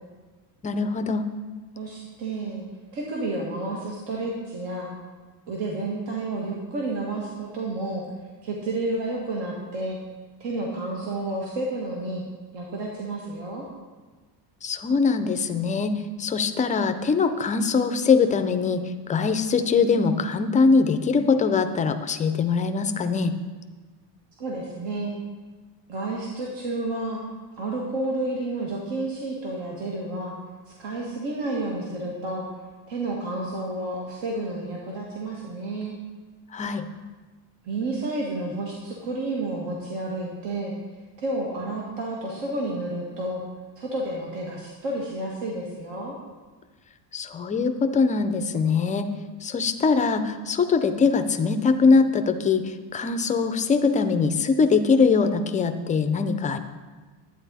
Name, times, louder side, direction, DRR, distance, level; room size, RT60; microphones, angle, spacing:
voice 1, 0.6-1.2 14.6-18.8 19.1-23.3 36.5-36.9 47.1-49.1 49.4-56.6, left 4 dB, 20° left, 9 dB, 0.3 m, -22 dB
voice 2, 1.7-2.6 2.9-4.9 5.5-8.0 8.4-10.0 10.4-12.2 12.5-13.7 24.4-25.1 25.9-27.2 27.6-30.3 30.7-32.5 32.9-36.0 37.6-40.7 41.2-43.4 43.8-46.1, right 2 dB, 75° right, -2 dB, 1.9 m, -30 dB
11.0 x 9.2 x 4.1 m, 1.3 s
cardioid pair, 150°, 44 cm